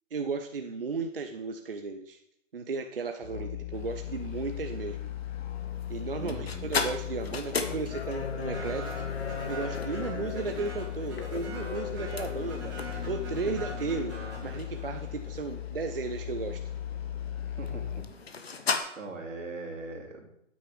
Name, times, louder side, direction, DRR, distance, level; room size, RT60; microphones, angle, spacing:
voice 1, 0.1-2.2 2.5-5.1 5.9-8.9 9.5-12.8 13.1-14.1 14.4-16.6, right 4 dB, 45° right, 5 dB, 0.6 m, -34 dB
Musical instrument, 3.2-18.2, left 12 dB, 80° left, 0.6 m, -38 dB
sound 1, 3.7-18.8, left 4 dB, 50° left, 1.0 m, -38 dB
voice 2, 6.2-6.7 13.5-13.6 17.6-18.1 19.0-20.3, right 3 dB, 75° right, 1 dB, 2.7 m, -40 dB
sound 2, 8.5-15.2, right 3 dB, 10° right, 1.7 m, -44 dB
9.1 x 8.6 x 3.5 m, 0.80 s
hypercardioid pair, 175°, 39 cm